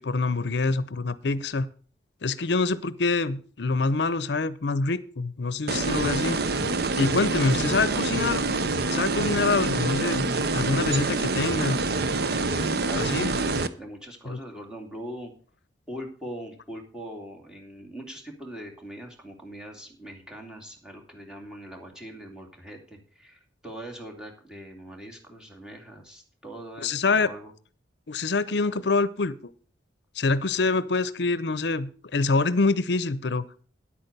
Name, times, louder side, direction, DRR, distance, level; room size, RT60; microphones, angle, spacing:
voice 1, 0.0-1.7 2.2-6.4 7.0-8.4 8.9-10.3 10.5-11.8 12.7-13.4 14.3-14.4 26.8-27.3 28.1-29.4 30.2-33.5, left 3 dB, 65° left, 17 dB, 0.7 m, -25 dB
sound 1, 5.7-13.7, right 3 dB, 60° right, 0.8 m, -26 dB
voice 2, 12.8-15.3 15.9-27.5, right 1 dB, 5° right, 0 dB, 2.7 m, -41 dB
10.5 x 8.7 x 6.7 m, 0.41 s
head